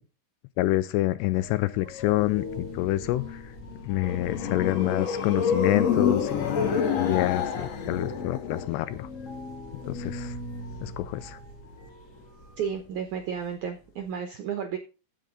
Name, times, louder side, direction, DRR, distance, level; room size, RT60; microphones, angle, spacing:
voice 1, 0.6-3.4 3.8-9.1 9.9-10.3 10.8-11.4, left 16 dB, 85° left, 14 dB, 2.7 m, -27 dB
sound 1, 1.3-14.2, left 3 dB, 35° left, 1.8 m, -41 dB
sound 2, 3.7-9.0, left 7 dB, 50° left, 2.3 m, -27 dB
voice 2, 12.6-14.8, right 7 dB, 70° right, 5 dB, 1.9 m, -32 dB
16.0 x 6.7 x 3.8 m, 0.34 s
omnidirectional pair, 4.8 m